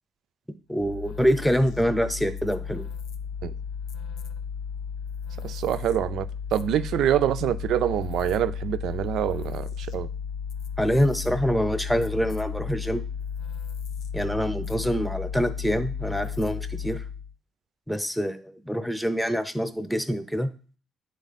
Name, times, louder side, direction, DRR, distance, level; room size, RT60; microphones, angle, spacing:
voice 1, 0.7-2.9 10.8-13.0 14.1-17.0 17.9-20.5, equal, ahead, 0.8 m, -25 dB
sound 1, 0.8-17.3, left 7 dB, 85° left, 0.5 m, -34 dB
voice 2, 5.4-10.1, right 11 dB, 80° right, 0.4 m, -26 dB
9.2 x 3.8 x 4.1 m
cardioid pair, 90°, 0 cm